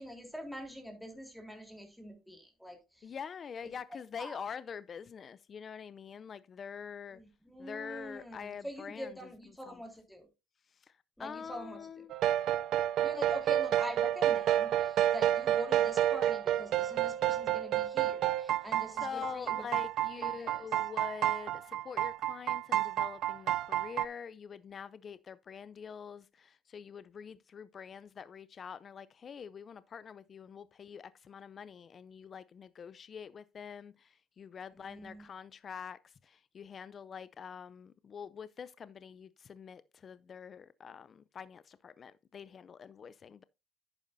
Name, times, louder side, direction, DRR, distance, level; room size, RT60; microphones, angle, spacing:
voice 1, 0.0-3.1 4.2-4.4 7.1-10.3 11.2-11.8 13.0-19.6 20.2-20.6 34.8-35.2, equal, 5° left, 3.5 m, -45 dB
voice 2, 3.0-7.2 7.6-9.3 9.7-9.8 10.7-12.1 18.5-43.4, left 7 dB, 40° left, 0.4 m, -45 dB
sound 1, 12.1-24.0, right 12 dB, 65° right, 0.4 m, -30 dB
10.5 x 9.1 x 2.6 m
cardioid pair, 100°, 0 cm